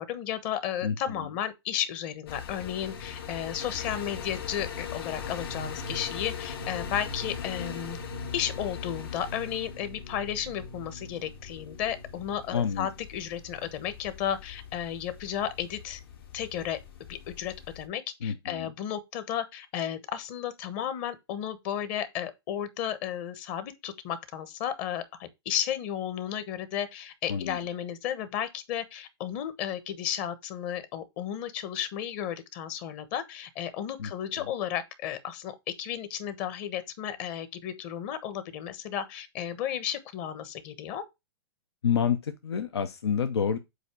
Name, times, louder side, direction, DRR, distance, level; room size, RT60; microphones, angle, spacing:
voice 1, 0.0-8.0 8.3-16.0 16.3-16.8 17.1-41.0, left 10 dB, 40° left, 1.1 m, -33 dB
voice 2, 0.8-1.3 12.5-12.9 18.2-18.7 27.3-27.6 34.0-34.1 34.4-34.5 41.8-43.6, left 7 dB, 85° left, 0.9 m, -29 dB
sound 1, 2.3-17.9, left 6 dB, 70° left, 1.8 m, -40 dB
8.0 x 2.9 x 5.9 m
hypercardioid pair, 140°, 13 cm